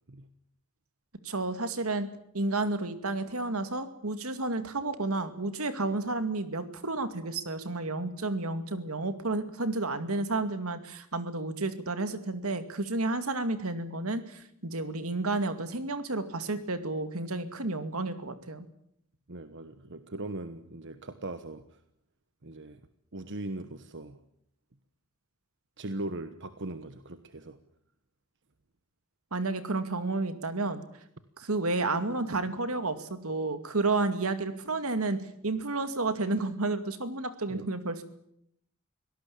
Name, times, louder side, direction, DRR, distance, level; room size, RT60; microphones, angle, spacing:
voice 1, 1.2-2.1 2.3-18.7 29.3-30.8 31.4-35.2 35.4-38.0, right 2 dB, 80° right, 10 dB, 2.3 m, -31 dB
voice 2, 19.3-21.8 22.4-22.8 23.1-24.2 25.8-27.6 37.5-37.7, right 2 dB, 60° right, 10 dB, 1.2 m, -39 dB
24.5 x 18.0 x 8.7 m, 0.74 s
head